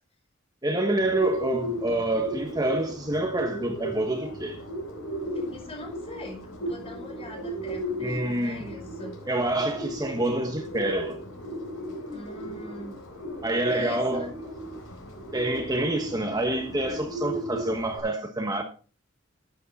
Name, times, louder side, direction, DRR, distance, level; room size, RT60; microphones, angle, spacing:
voice 1, 0.6-4.6 8.0-8.7 9.3-11.2 13.4-14.3 15.3-18.6, right 1 dB, 20° right, 1.3 m, -27 dB
Bird, 1.0-18.0, right 1 dB, 75° left, 4.4 m, -36 dB
voice 2, 5.2-9.1 12.1-12.9 13.7-14.3, left 1 dB, 30° left, 5.2 m, -42 dB
13.0 x 9.3 x 4.2 m
head